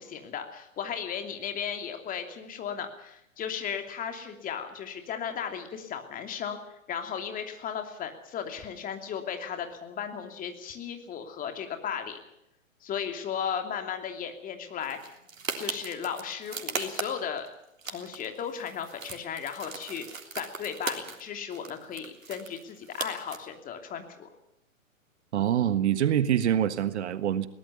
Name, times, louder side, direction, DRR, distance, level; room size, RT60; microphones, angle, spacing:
voice 1, 0.0-6.6 6.9-12.2 12.8-15.1 15.6-17.5 17.9-20.0 20.3-24.3, left 8 dB, 20° left, 6 dB, 2.9 m, -35 dB
sound 1, 14.8-17.5 17.8-21.2 21.5-23.4, right 4 dB, 75° right, 3.6 m, -38 dB
voice 2, 25.3-27.5, right 10 dB, 55° right, 13 dB, 1.6 m, -25 dB
22.0 x 18.5 x 7.0 m, 0.84 s
figure-of-eight pair, 115°, 40 cm